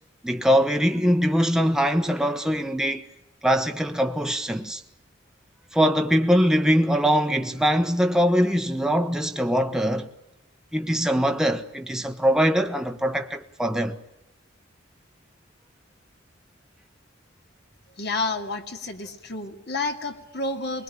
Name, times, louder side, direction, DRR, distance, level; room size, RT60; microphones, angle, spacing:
voice 1, 0.2-3.1 3.4-4.8 5.7-10.1 10.7-14.0, equal, 5° right, 1.1 m, -22 dB
voice 2, 18.0-20.8, left 3 dB, 55° left, 2.5 m, -30 dB
23.5 x 21.5 x 10.0 m
head